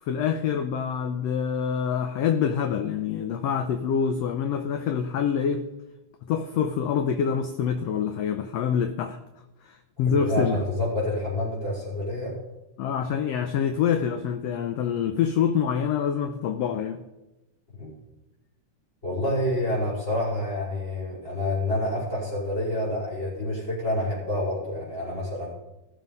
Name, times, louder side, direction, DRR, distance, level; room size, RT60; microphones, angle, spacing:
voice 1, 0.0-5.6 6.3-9.2 9.6-10.6 12.8-17.0, left 7 dB, 75° left, 9 dB, 1.5 m, -26 dB
voice 2, 10.0-12.4 17.7-17.9 19.0-25.5, left 1 dB, 20° left, -10 dB, 4.9 m, -28 dB
16.5 x 6.6 x 5.4 m, 0.99 s
omnidirectional pair, 3.5 m